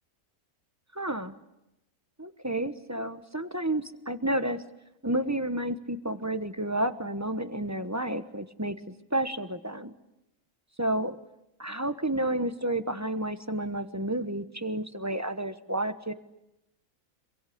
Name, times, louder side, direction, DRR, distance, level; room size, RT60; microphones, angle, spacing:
voice 1, 0.9-1.4 2.2-4.6 5.0-8.7 9.1-9.9 10.8-11.2 11.6-16.1, right 1 dB, 15° right, 9 dB, 1.1 m, -30 dB
27.5 x 22.5 x 8.6 m, 0.91 s
omnidirectional pair, 1.4 m